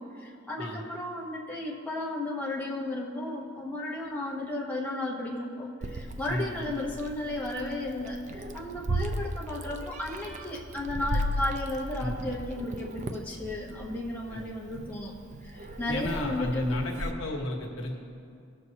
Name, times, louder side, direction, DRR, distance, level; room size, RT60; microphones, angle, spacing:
voice 1, 0.0-16.7, left 1 dB, 10° left, -5 dB, 0.9 m, -34 dB
Meow, 5.8-17.1, right 1 dB, 35° right, 0.4 m, -36 dB
voice 2, 15.9-17.9, left 1 dB, 65° left, 0 dB, 1.1 m, -33 dB
16.5 x 6.4 x 2.8 m, 2.5 s
head